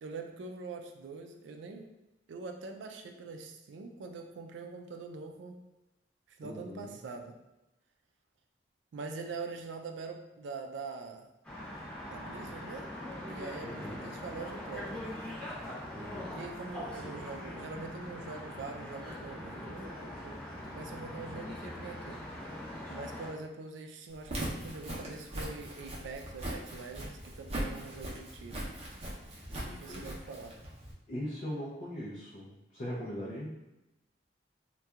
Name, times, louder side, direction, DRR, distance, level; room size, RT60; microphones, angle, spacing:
voice 1, 0.0-1.9 2.3-5.6 6.3-7.4 8.9-11.3 12.1-12.9 13.3-15.1 16.3-20.4 20.7-22.2 22.9-28.6 29.6-30.6, right 4 dB, 80° right, 5 dB, 0.3 m, -44 dB
voice 2, 6.4-7.0 13.6-14.1 15.9-16.4 17.0-17.3 29.5-30.1 31.1-33.6, equal, 40° left, -6 dB, 0.4 m, -41 dB
sound 1, 11.4-23.3, left 1 dB, 5° left, 0.8 m, -42 dB
Walk footsteps, 24.1-30.9, right 1 dB, 35° right, 0.6 m, -40 dB
2.7 x 2.2 x 2.3 m, 0.98 s
head